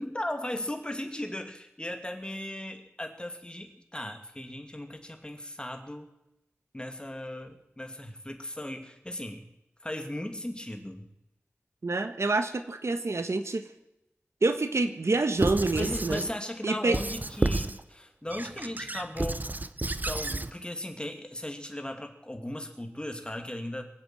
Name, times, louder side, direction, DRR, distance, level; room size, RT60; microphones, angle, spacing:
voice 1, 0.0-6.1 6.7-9.5 9.8-11.1 15.8-19.5 20.0-23.9, left 1 dB, 20° left, 5 dB, 2.6 m, -37 dB
voice 2, 11.8-13.6 14.4-16.2 16.6-17.0, right 3 dB, 85° right, 9 dB, 1.4 m, -27 dB
Squeak / Writing, 15.4-16.3 16.9-17.8 18.3-20.5, right 2 dB, 40° right, 0.8 m, -31 dB
22.5 x 8.0 x 7.9 m, 0.88 s
wide cardioid pair, 55°, 5 cm